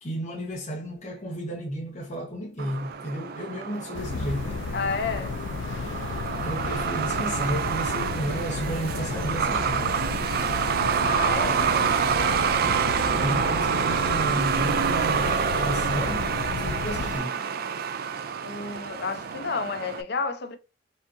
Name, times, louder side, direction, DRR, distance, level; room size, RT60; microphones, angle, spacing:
voice 1, 0.0-4.6 6.4-10.0 13.2-17.4, right 1 dB, 40° left, 1.0 m, -33 dB
Truck, 2.6-20.0, right 6 dB, 55° right, 0.4 m, -27 dB
sound 1, 3.9-17.2, left 5 dB, 90° left, 0.3 m, -33 dB
voice 2, 4.7-5.4 11.0-12.5 18.4-20.6, left 4 dB, 60° left, 0.7 m, -31 dB
4.9 x 2.8 x 2.6 m
head